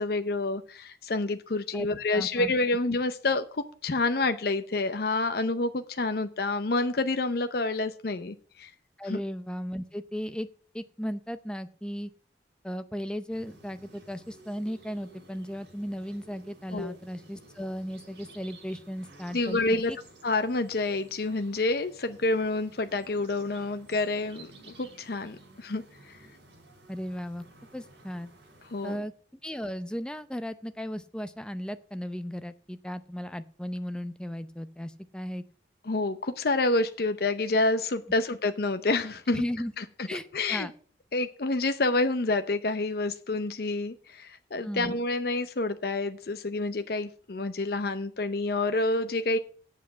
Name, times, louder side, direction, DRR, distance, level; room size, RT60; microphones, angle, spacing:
voice 1, 0.0-8.7 9.0-9.2 16.7-16.9 19.3-19.9 20.2-24.5 24.8-26.2 28.7-29.0 35.9-39.4 39.8-39.9 40.3-40.7 41.1-49.4, left 2 dB, 60° left, 9 dB, 0.7 m, -28 dB
voice 2, 2.1-2.5 9.0-10.5 10.7-12.1 12.6-20.0 26.9-27.4 27.7-28.3 28.8-29.1 29.4-35.4 39.3-39.7 40.1-40.7 44.6-45.0, equal, 5° left, 11 dB, 0.6 m, -36 dB
sound 1, 13.3-29.0, right 2 dB, 80° right, 3.9 m, -54 dB
8.3 x 7.5 x 6.9 m, 0.43 s
head